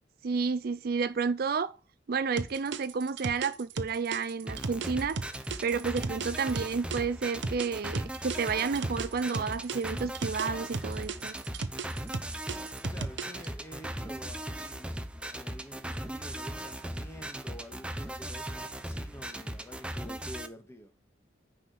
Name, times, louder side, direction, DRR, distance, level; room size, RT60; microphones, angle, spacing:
voice 1, 0.2-1.8 2.1-5.2 5.6-11.4, right 5 dB, 55° right, 0.4 m, -31 dB
sound 1, 2.4-7.0 7.4-10.5 10.7-13.5, right 4 dB, 70° right, 0.9 m, -35 dB
sound 2, 4.5-20.5, right 1 dB, 5° right, 0.8 m, -38 dB
voice 2, 12.9-20.9, equal, 15° left, 1.7 m, -48 dB
9.8 x 4.9 x 6.2 m
head